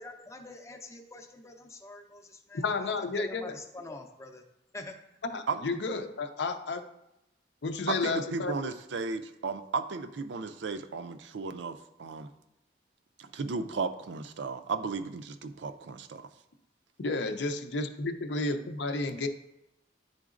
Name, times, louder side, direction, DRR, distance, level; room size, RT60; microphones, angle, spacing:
voice 1, 0.0-4.4 4.7-5.0, left 2 dB, 15° left, 4 dB, 0.6 m, -45 dB
voice 2, 2.5-3.6 5.2-6.9 7.6-8.5 17.0-19.3, left 3 dB, 70° left, 7 dB, 0.6 m, -32 dB
voice 3, 7.9-12.3 13.2-16.2, right 4 dB, 75° right, 9 dB, 0.4 m, -34 dB
10.5 x 3.8 x 2.5 m, 0.86 s
head